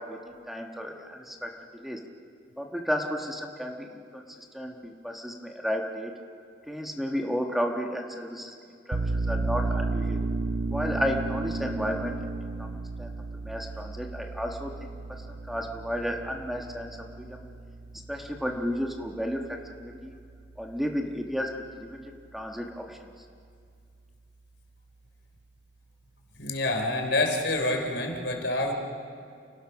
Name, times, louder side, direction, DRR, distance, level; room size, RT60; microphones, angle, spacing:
voice 1, 0.0-1.5 1.8-2.0 2.6-3.9 4.1-4.2 4.5-6.1 6.7-8.5 8.9-9.0 9.3-10.2 10.7-12.1 12.6-13.1 13.4-14.9 15.5-16.9 17.2-17.4 18.1-19.4 19.8-20.1 20.6-21.5 21.8-22.0 22.3-23.0, equal, ahead, 1 dB, 1.4 m, -32 dB
sound 1, 8.9-20.2, right 3 dB, 70° right, 0.9 m, -33 dB
voice 2, 26.4-28.7, left 2 dB, 70° left, 3 dB, 3.5 m, -27 dB
30.0 x 18.5 x 6.0 m, 2.3 s
head